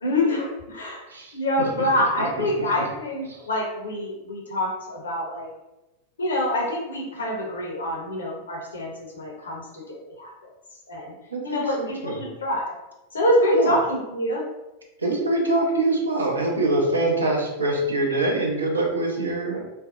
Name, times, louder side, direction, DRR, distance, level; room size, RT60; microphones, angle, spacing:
voice 1, 0.0-1.0 1.3-5.5 6.2-8.9 9.1-10.3 10.9-11.1 11.4-12.7 13.1-14.4, left 1 dB, 70° left, -1 dB, 0.6 m, -25 dB
voice 2, 1.1-1.8 2.2-2.7 3.3-3.4 11.3-12.2 13.5-13.7 15.0-19.6, right 2 dB, 75° right, 0 dB, 0.5 m, -25 dB
2.6 x 2.0 x 2.4 m, 1.0 s
figure-of-eight pair, 90°, 0 cm